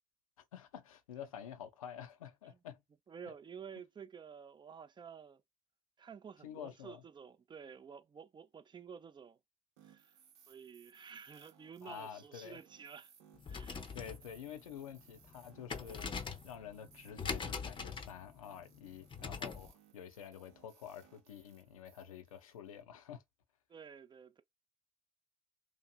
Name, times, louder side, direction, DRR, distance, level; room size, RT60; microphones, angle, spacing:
voice 1, 0.5-2.8 6.4-7.0 11.8-12.6 13.9-23.2, left 8 dB, 90° left, 0.4 m, -49 dB
voice 2, 3.1-5.4 6.0-9.4 9.8-10.2 10.5-13.1 13.5-13.9 23.7-24.4, right 7 dB, 25° right, 0.4 m, -51 dB
sound 1, 9.8-22.8, right 8 dB, 75° right, 0.6 m, -65 dB
sound 2, 13.3-19.7, left 5 dB, 30° left, 0.6 m, -43 dB
2.9 x 2.5 x 2.2 m
hypercardioid pair, 55°, 17 cm